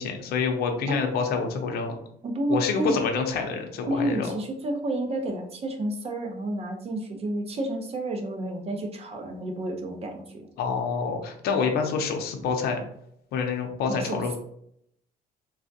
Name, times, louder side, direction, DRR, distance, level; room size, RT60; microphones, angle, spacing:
voice 1, 0.0-2.0 2.5-4.3 10.6-12.8 13.3-14.4, left 5 dB, 70° left, 3 dB, 0.6 m, -27 dB
voice 2, 2.2-3.0 3.9-10.5 13.9-14.4, right 1 dB, 35° right, 4 dB, 0.7 m, -30 dB
3.4 x 2.3 x 2.7 m, 0.72 s
cardioid pair, 110°, 17 cm